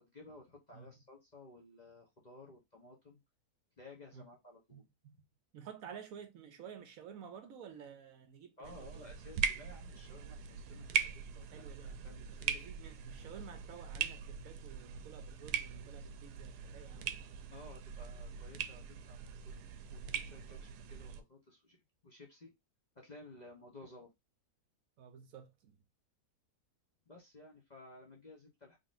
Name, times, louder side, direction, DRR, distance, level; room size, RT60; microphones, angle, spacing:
voice 1, 0.0-3.2 3.8-4.8 8.6-12.5 17.5-22.5 23.0-24.1 27.1-28.8, left 2 dB, 35° left, 0.8 m, -56 dB
voice 2, 4.7-5.2 5.5-9.0 11.4-17.1 20.5-20.6 25.0-25.8, right 7 dB, 65° right, 1.0 m, -52 dB
sound 1, 8.6-21.2, right 7 dB, 90° right, 1.2 m, -41 dB
3.9 x 3.5 x 2.5 m
omnidirectional pair, 1.7 m